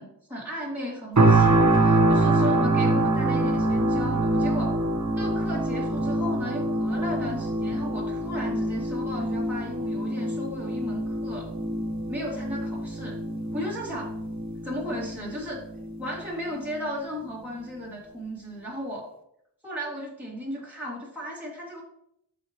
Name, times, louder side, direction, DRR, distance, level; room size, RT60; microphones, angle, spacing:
voice 1, 0.0-4.8 5.2-11.5 12.1-13.2 13.5-14.1 14.6-15.6 16.0-19.1 19.6-21.8, equal, 5° right, -6 dB, 2.0 m, -35 dB
sound 1, 1.2-16.2 16.7-16.8, right 2 dB, 40° right, 1.1 m, -25 dB
13.0 x 5.0 x 2.9 m, 0.79 s
wide cardioid pair, 70°, 44 cm